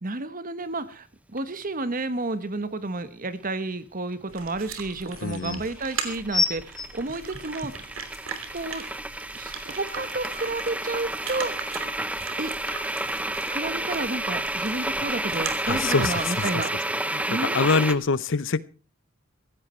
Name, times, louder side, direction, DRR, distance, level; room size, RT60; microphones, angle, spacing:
voice 1, 0.0-7.9 8.5-8.8 9.3-11.5 12.4-12.5 13.5-16.9 17.3-18.0, right 2 dB, 40° right, 13 dB, 1.3 m, -31 dB
sound 1, 1.4-1.5 5.8-17.9, right 1 dB, 5° right, 0.8 m, -31 dB
Howling speaker, 3.0-3.1 4.7-4.8 5.1-5.6 6.3-7.9 8.6-8.7, left 3 dB, 20° left, 1.5 m, -28 dB
sound 2, 4.3-16.5, right 6 dB, 70° right, 3.0 m, -39 dB
voice 2, 5.2-5.6 15.7-16.5 17.1-18.6, left 4 dB, 65° left, 19 dB, 0.7 m, -25 dB
16.0 x 16.0 x 4.4 m, 0.36 s
head